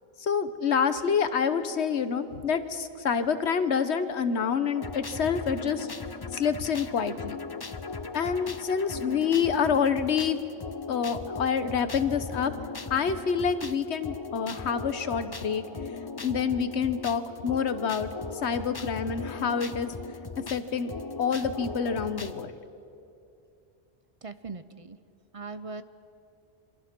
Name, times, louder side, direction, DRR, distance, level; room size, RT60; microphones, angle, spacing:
voice 1, 0.2-5.9 6.3-7.4 8.1-10.4 10.9-12.5 12.9-15.6 16.2-18.1 18.4-19.9 20.5-20.9 21.2-22.5, left 6 dB, 85° left, 11 dB, 1.3 m, -27 dB
sound 1, 4.8-22.5, left 4 dB, 30° left, 0.6 m, -39 dB
voice 2, 24.2-25.0 25.3-25.8, right 4 dB, 40° right, 12 dB, 0.6 m, -39 dB
27.5 x 23.5 x 6.1 m, 2.6 s
omnidirectional pair, 1.1 m